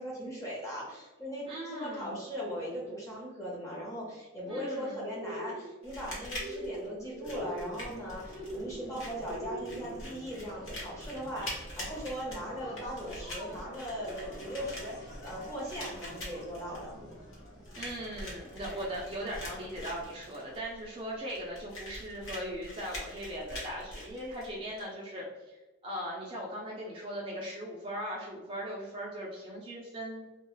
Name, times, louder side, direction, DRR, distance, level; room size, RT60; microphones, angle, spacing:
voice 1, 0.0-17.0, equal, 15° left, -5 dB, 0.7 m, -39 dB
voice 2, 1.5-2.2 4.5-5.0 17.7-25.5 25.8-30.2, equal, 25° right, -4 dB, 0.4 m, -39 dB
sound 1, 5.1-5.6 6.4-6.9 7.1-7.6 8.3-8.7 9.3-9.8, right 1 dB, 85° right, 0.5 m, -41 dB
sound 2, 5.8-24.8, left 1 dB, 85° left, 1.0 m, -44 dB
sound 3, 7.2-20.2, equal, 55° left, 0.9 m, -50 dB
2.3 x 2.2 x 3.0 m, 1.1 s
head